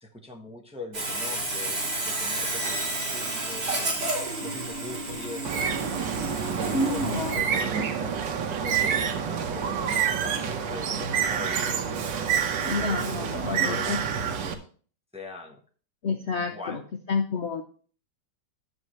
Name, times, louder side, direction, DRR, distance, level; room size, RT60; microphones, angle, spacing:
voice 1, 0.0-4.0 4.4-5.7 6.2-11.8 12.8-14.7 15.1-15.6 16.4-16.8, left 2 dB, 5° right, 1 dB, 0.9 m, -41 dB
Sawing, 0.9-7.4, right 2 dB, 65° right, 3.3 m, -31 dB
Bird, 5.4-14.5, right 7 dB, 85° right, 1.6 m, -28 dB
voice 2, 6.7-7.4 12.6-14.0 16.0-16.8 17.1-17.6, left 3 dB, 55° left, 6 dB, 0.8 m, -29 dB
11.0 x 7.3 x 3.2 m, 0.42 s
omnidirectional pair, 1.9 m